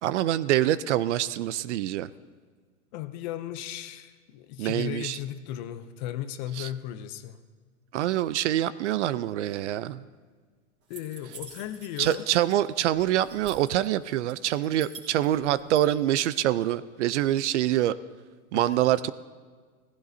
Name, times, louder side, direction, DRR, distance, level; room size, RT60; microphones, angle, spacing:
voice 1, 0.0-2.1 4.6-5.2 6.6-6.7 7.9-10.0 12.0-18.0 18.5-19.1, right 13 dB, 55° right, 17 dB, 0.5 m, -25 dB
voice 2, 2.9-7.4 10.9-12.3 15.6-15.8 18.5-18.6, left 12 dB, 30° left, 11 dB, 0.5 m, -36 dB
sound 1, 10.9-12.7 12.9-13.9 14.3-15.8, right 4 dB, 30° right, 3.4 m, -45 dB
17.5 x 15.0 x 2.7 m, 1.5 s
hypercardioid pair, 135°, 44 cm